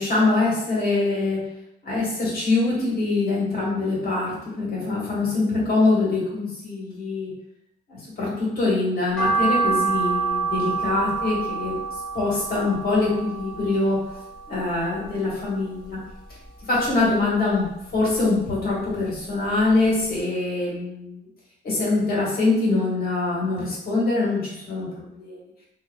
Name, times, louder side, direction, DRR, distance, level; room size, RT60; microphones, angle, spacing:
voice 1, 0.0-1.4 1.8-7.3 7.9-11.8 12.1-14.0 14.5-16.0 16.7-17.7 17.9-21.2 21.6-25.4, left 3 dB, 50° left, -5 dB, 1.3 m, -24 dB
sound 1, 9.2-15.5 15.8-17.0 17.3-18.8 19.1-19.2 19.7-19.8 20.0-20.1, right 5 dB, 5° left, 0.8 m, -28 dB
2.7 x 2.3 x 2.3 m, 0.83 s
cardioid pair, 90°, 20 cm